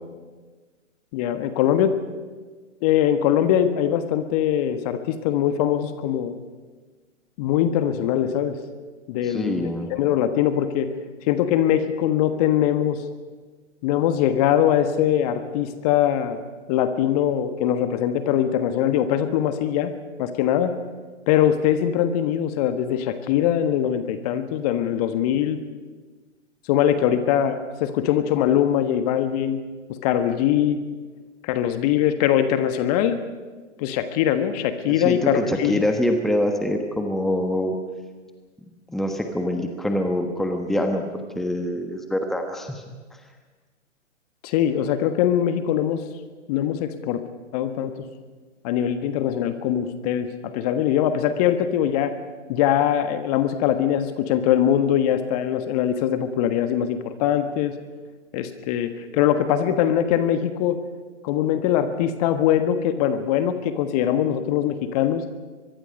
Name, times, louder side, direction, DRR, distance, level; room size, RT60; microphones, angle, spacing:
voice 1, 1.1-1.9 2.8-6.3 7.4-8.6 9.1-10.9 11.2-13.0 13.8-16.4 16.7-19.9 20.2-20.7 21.3-25.6 26.7-29.6 29.9-30.8 31.4-33.2 33.8-35.8 44.4-46.0 46.5-47.2 47.5-47.9 48.6-52.1 52.5-57.7 58.3-60.8 61.2-65.2, left 10 dB, 30° left, 10 dB, 1.4 m, -22 dB
voice 2, 9.2-9.9 34.9-37.7 38.9-41.0 41.3-42.8, left 1 dB, ahead, 5 dB, 1.3 m, -25 dB
23.5 x 22.0 x 5.3 m, 1.4 s
figure-of-eight pair, 125°, 38 cm